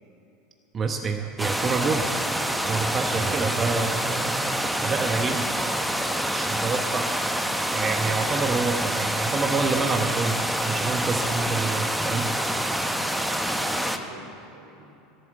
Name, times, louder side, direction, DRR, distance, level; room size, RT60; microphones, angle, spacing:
voice 1, 0.7-2.1 2.6-5.6 6.3-7.1 7.7-12.3, right 4 dB, 30° right, 4 dB, 1.1 m, -27 dB
sound 1, 1.4-14.0, right 1 dB, 5° right, 1.0 m, -27 dB
voice 2, 3.1-3.5 13.5-15.0, right 2 dB, 80° right, -1 dB, 3.3 m, -45 dB
12.0 x 12.0 x 7.2 m, 2.9 s
hypercardioid pair, 80°, 0 cm